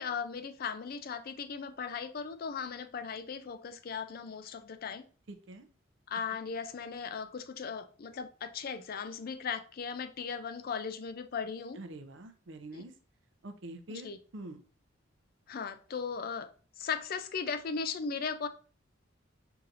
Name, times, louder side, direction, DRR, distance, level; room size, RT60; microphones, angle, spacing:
voice 1, 0.0-5.0 6.1-11.8 12.7-12.8 13.9-14.2 15.5-16.5 16.8-18.5, left 6 dB, 50° left, 0.4 m, -37 dB
voice 2, 11.8-12.9 13.4-14.6, right 2 dB, 65° right, 0.6 m, -45 dB
5.7 x 2.7 x 2.5 m
head